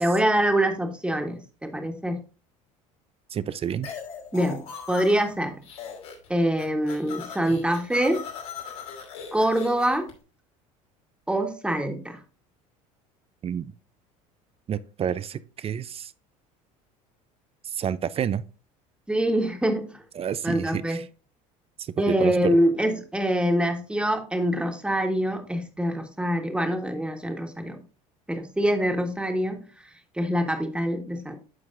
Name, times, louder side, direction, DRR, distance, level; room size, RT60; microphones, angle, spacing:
voice 1, 0.0-2.2 4.3-5.6 6.3-8.2 9.3-10.1 11.3-12.2 19.1-20.0 20.4-21.0 22.0-27.8 28.3-29.6 30.2-31.4, equal, 5° right, 1.5 m, -25 dB
voice 2, 3.3-3.9 13.4-13.7 14.7-16.1 17.6-18.4 20.2-21.0 21.8-22.6, right 8 dB, 35° right, 0.5 m, -29 dB
sound 1, 3.8-5.3 5.6-6.3 6.5-10.1, left 7 dB, 80° left, 2.7 m, -39 dB
12.5 x 4.6 x 2.6 m
hypercardioid pair, 80°, 18 cm